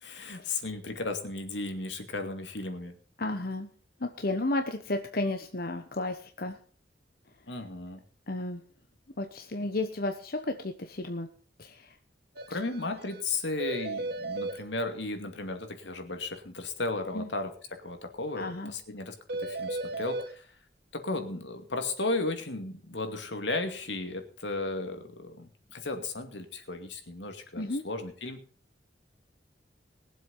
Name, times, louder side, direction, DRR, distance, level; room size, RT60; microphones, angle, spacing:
voice 1, 0.0-2.9 7.5-8.0 12.5-20.5 20.9-28.4, left 2 dB, 80° left, 6 dB, 2.4 m, -35 dB
voice 2, 3.2-3.7 4.0-6.6 8.3-8.6 9.2-11.3 11.6-12.0 12.5-12.6 17.1-17.3 18.4-18.7 27.6-27.8, left 2 dB, 55° left, 6 dB, 1.1 m, -33 dB
sound 1, 12.4-12.5 12.7-12.8 13.1-13.2 13.6-14.6 19.3-20.3, right 2 dB, 60° right, 1.7 m, -34 dB
21.0 x 7.8 x 5.5 m, 0.42 s
head